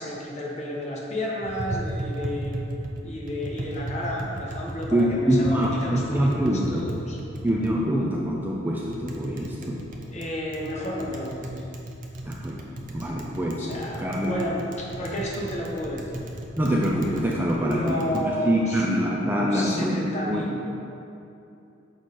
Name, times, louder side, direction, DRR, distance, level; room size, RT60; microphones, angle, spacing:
voice 1, 0.0-2.5 3.0-7.2 10.1-11.6 13.6-16.2 17.5-18.8 19.5-20.6, equal, 35° left, -3 dB, 1.0 m, -32 dB
Tap, 1.4-18.2, right 1 dB, 45° right, 0.7 m, -36 dB
voice 2, 4.9-6.8 7.4-9.8 12.2-12.7 12.9-13.7 14.0-14.4 16.6-20.5, equal, 10° right, -2 dB, 0.4 m, -25 dB
6.3 x 4.9 x 4.2 m, 2.7 s
head